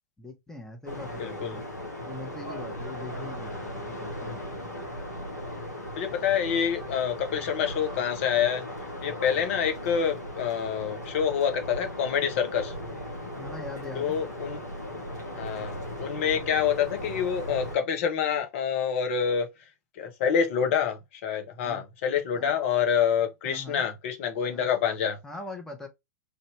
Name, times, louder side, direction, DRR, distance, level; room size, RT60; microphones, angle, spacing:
voice 1, 0.2-1.7 2.1-4.6 13.3-14.2 21.6-21.8 22.3-22.5 23.4-23.9 24.5-24.7 25.2-25.9, left 2 dB, 5° left, 1.1 m, -42 dB
sound 1, 0.9-17.8, left 1 dB, 85° left, 1.4 m, -37 dB
voice 2, 1.2-1.6 6.0-8.7 9.0-12.7 13.9-14.6 15.3-19.5 20.0-25.2, left 7 dB, 50° left, 1.0 m, -27 dB
3.4 x 2.7 x 3.1 m
figure-of-eight pair, 105°, 9 cm